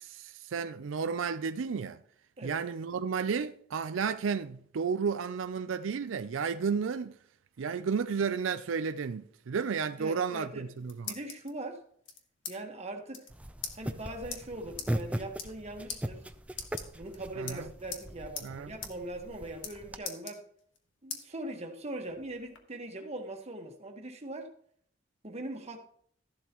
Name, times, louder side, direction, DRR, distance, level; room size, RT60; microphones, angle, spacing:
voice 1, 0.0-2.0 2.4-7.2 7.6-11.2 17.4-17.7 18.4-18.7, right 6 dB, 90° right, 0.4 m, -32 dB
voice 2, 10.0-10.6 11.1-11.9 12.5-13.3 13.7-16.2 16.9-20.4 21.0-24.5 25.2-25.9, right 1 dB, 35° right, 1.4 m, -41 dB
sound 1, 10.5-11.5 12.1-12.6 12.8-12.9 13.1-13.3 13.6-13.8 14.3-14.4 14.8-14.9 15.3-15.6 15.9-16.0 16.5-17.2 17.5-18.1 18.4-18.5 18.8-18.9 19.2-19.7 20.0-20.8 21.1-21.2 21.7-22.6, left 7 dB, 70° left, 1.5 m, -40 dB
sound 2, 13.3-20.0, right 1 dB, 5° right, 0.5 m, -39 dB
14.0 x 11.5 x 3.0 m
head